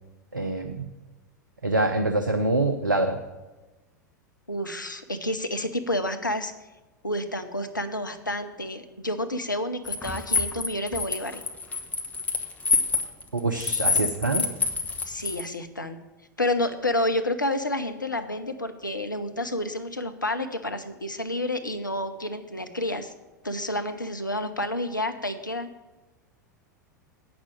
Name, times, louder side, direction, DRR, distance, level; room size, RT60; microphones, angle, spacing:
voice 1, 0.3-0.9 1.6-3.2 13.3-14.5, right 2 dB, 85° right, 6 dB, 0.7 m, -25 dB
voice 2, 4.5-6.5 7.0-11.4 15.1-16.0 16.4-23.1 23.4-25.7, left 1 dB, 85° left, 8 dB, 0.8 m, -29 dB
sound 1, 9.9-15.4, left 4 dB, 15° left, 1.1 m, -26 dB
8.7 x 6.0 x 7.8 m, 1.1 s
figure-of-eight pair, 90°, 10 cm